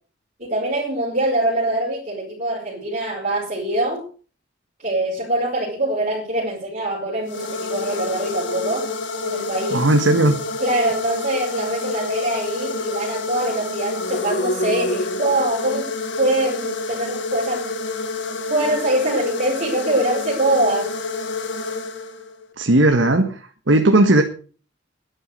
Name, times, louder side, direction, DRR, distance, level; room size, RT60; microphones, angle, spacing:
voice 1, 0.4-4.0 4.8-8.9 9.2-9.8 10.6-17.8 18.5-20.9, right 1 dB, 40° right, -5 dB, 5.2 m, -23 dB
sound 1, 7.2-22.5, left 3 dB, 70° left, 2.0 m, -28 dB
voice 2, 9.7-10.4 22.6-23.4 23.7-24.2, right 1 dB, 75° right, 4 dB, 1.6 m, -16 dB
12.5 x 11.0 x 6.5 m, 0.41 s
head